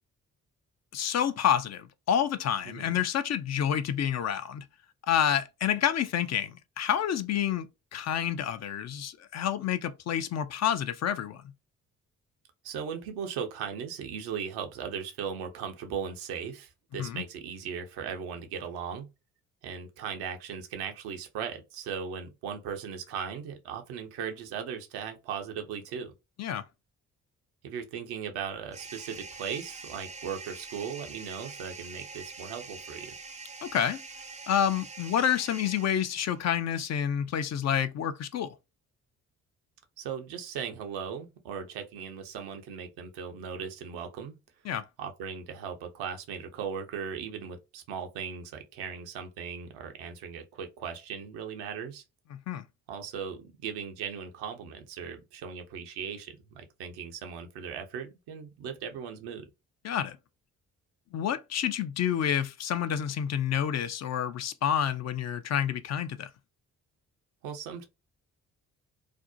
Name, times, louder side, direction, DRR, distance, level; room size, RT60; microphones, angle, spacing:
voice 1, 0.9-4.6 5.1-7.7 7.9-11.4 17.0-17.2 26.4-26.6 33.6-34.0 34.5-38.6 44.7-44.8 52.3-52.6 59.8-60.2 61.1-66.3, left 9 dB, 45° left, 0.4 m, -28 dB
voice 2, 12.6-19.1 19.6-26.1 27.6-33.1 40.0-44.4 45.0-52.0 52.9-59.4 67.4-67.9, right 7 dB, 75° right, 0.6 m, -38 dB
sound 1, 28.7-36.5, right 4 dB, 20° right, 0.5 m, -45 dB
2.5 x 2.1 x 2.6 m
hypercardioid pair, 40°, 39 cm